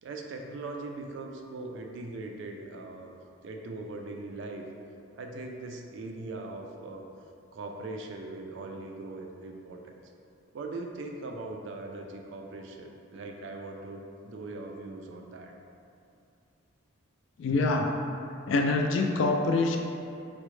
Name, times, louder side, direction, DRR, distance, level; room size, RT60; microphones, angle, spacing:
voice 1, 0.0-3.1 3.4-4.7 5.2-7.0 7.5-10.0 10.5-15.5, right 2 dB, 60° right, 2 dB, 0.3 m, -40 dB
voice 2, 17.4-17.9 18.5-19.8, left 3 dB, 65° left, 3 dB, 0.3 m, -25 dB
3.5 x 2.1 x 3.1 m, 2.5 s
head